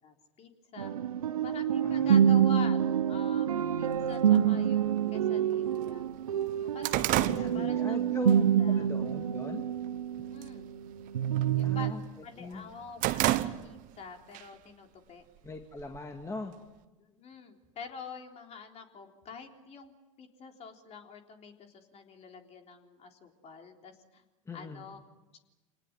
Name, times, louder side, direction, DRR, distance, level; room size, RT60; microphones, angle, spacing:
voice 1, 0.0-0.9 1.4-2.8 3.1-6.0 6.6-8.0 8.6-8.9 10.2-10.7 11.6-12.0 12.2-15.3 17.0-19.9 20.2-24.2 24.5-25.0, left 5 dB, 40° left, 3 dB, 3.7 m, -47 dB
sound 1, 0.8-10.8 11.1-11.9, right 9 dB, 85° right, 1.0 m, -27 dB
voice 2, 1.8-2.4 7.3-9.7 11.6-12.0 12.4-12.7 15.4-16.5 24.5-24.9, left 2 dB, 15° left, 3 dB, 2.3 m, -41 dB
sound 2, 4.0-4.1 5.0-5.1 5.5-5.6 6.0-8.4 8.8-9.1 9.5-10.0 10.3-10.6 10.9-12.1 12.5-14.0 14.3-14.5 15.4-16.2, right 16 dB, 50° right, 1.2 m, -31 dB
26.5 x 19.0 x 9.5 m, 1.1 s
hypercardioid pair, 85°, 18 cm